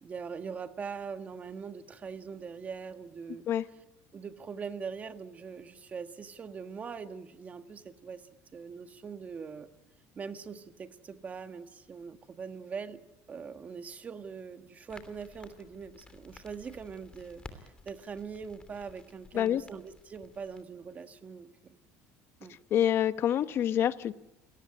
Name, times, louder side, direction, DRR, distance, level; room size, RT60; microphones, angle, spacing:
voice 1, 0.0-3.5 4.1-8.2 8.5-9.7 10.1-13.0 13.3-21.8 22.4-22.6, right 6 dB, 30° right, 8 dB, 1.6 m, -42 dB
Crackle, 14.9-20.6, left 3 dB, 15° left, 3.0 m, -54 dB
voice 2, 22.7-24.1, left 10 dB, 45° left, 12 dB, 1.1 m, -26 dB
27.5 x 18.5 x 9.9 m, 0.92 s
cardioid pair, 135°, 6 cm